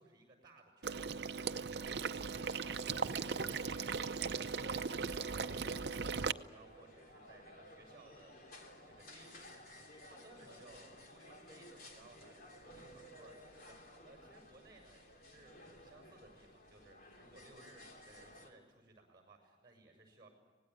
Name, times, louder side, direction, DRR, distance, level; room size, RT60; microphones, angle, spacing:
voice 1, 0.0-8.5 8.8-20.3, right 2 dB, 25° right, 3 dB, 6.7 m, -62 dB
Water / Liquid, 0.8-6.3, right 5 dB, 60° right, 0.7 m, -38 dB
sound 1, 2.4-18.5, left 1 dB, 50° left, 3.2 m, -56 dB
25.5 x 19.0 x 9.5 m, 1.4 s
head